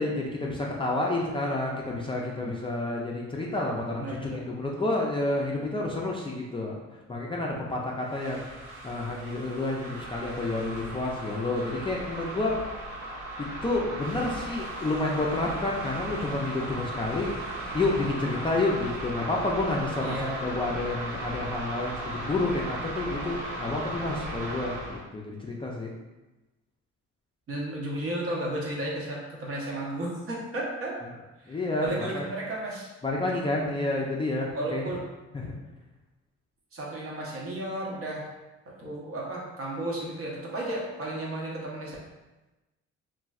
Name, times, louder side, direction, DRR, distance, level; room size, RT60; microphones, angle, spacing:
voice 1, 0.0-6.8 7.1-12.5 13.6-17.3 17.7-25.9 31.5-32.2 33.0-34.9 35.3-35.5, left 2 dB, 15° left, -3 dB, 0.4 m, -29 dB
voice 2, 3.9-4.5 20.0-20.4 27.5-31.0 31.4-32.9 34.5-35.0 36.7-38.3 38.7-42.0, right 1 dB, 50° right, -4 dB, 0.9 m, -33 dB
sound 1, 8.0-25.0, right 1 dB, 85° right, 0.9 m, -37 dB
3.0 x 2.6 x 2.4 m, 1.1 s
cardioid pair, 90°, 30 cm